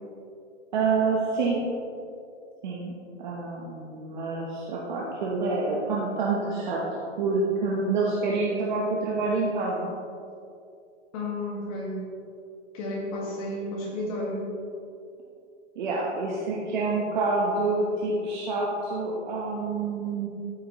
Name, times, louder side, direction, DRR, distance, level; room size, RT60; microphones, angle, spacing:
voice 1, 0.7-1.6 2.6-2.9 3.2-6.8 7.2-9.9 15.8-20.3, right 3 dB, 40° right, -4 dB, 1.1 m, -27 dB
voice 2, 11.1-12.0 12.7-14.5, left 1 dB, 30° left, -2 dB, 1.7 m, -32 dB
13.0 x 6.0 x 3.0 m, 2.5 s
hypercardioid pair, 175°, 35 cm